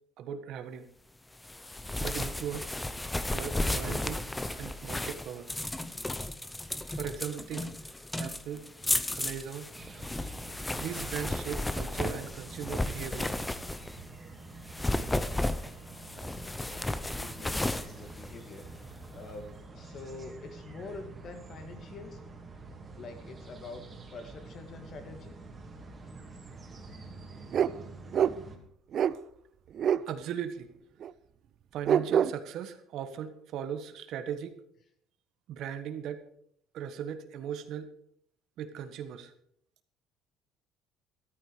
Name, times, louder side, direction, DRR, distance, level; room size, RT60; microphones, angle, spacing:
voice 1, 0.2-0.9 2.0-2.7 3.3-4.3 4.6-5.5 6.9-8.7 9.1-9.7 10.8-13.3 30.1-30.7 31.7-34.5 35.5-36.2 36.7-37.9 38.6-39.3, right 8 dB, 60° right, 9 dB, 1.4 m, -38 dB
sound 1, 1.4-14.1 14.6-18.9, left 1 dB, 10° left, 0.7 m, -34 dB
sound 2, 9.7-28.6, right 3 dB, 20° right, 2.5 m, -48 dB
voice 2, 15.9-22.2 23.0-23.8 24.1-25.4 26.0-26.1 26.5-26.9, left 3 dB, 45° left, 7 dB, 2.3 m, -46 dB
sound 3, 27.5-27.7 28.1-28.3 28.9-29.1 29.7-30.0 31.0-31.1 31.9-32.3, right 8 dB, 45° right, 0.5 m, -25 dB
13.5 x 13.0 x 5.0 m, 0.69 s
cardioid pair, 140°, 0 cm